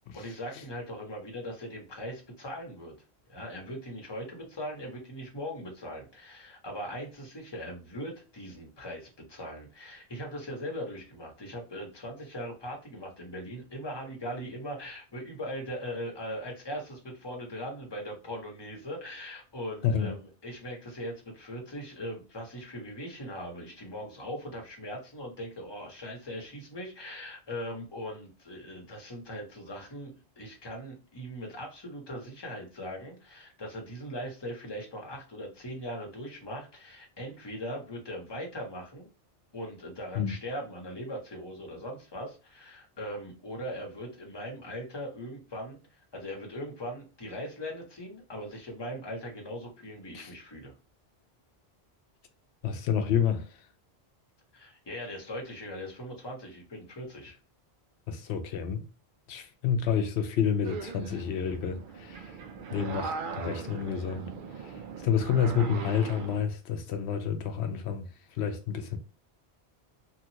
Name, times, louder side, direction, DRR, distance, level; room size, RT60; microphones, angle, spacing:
voice 1, 0.1-2.9 3.3-39.1 39.5-50.7 54.5-57.4, equal, 25° left, 1.0 m, -40 dB
voice 2, 19.8-20.1 40.2-40.4 50.1-50.3 52.6-53.6 58.1-58.9 59.3-62.4 62.7-64.3 64.6-64.7 65.0-68.1 68.3-69.0, left 7 dB, 90° left, 0.9 m, -29 dB
sound 1, 60.6-66.4, right 5 dB, 60° right, 0.6 m, -39 dB
2.9 x 2.4 x 2.8 m
omnidirectional pair, 1.1 m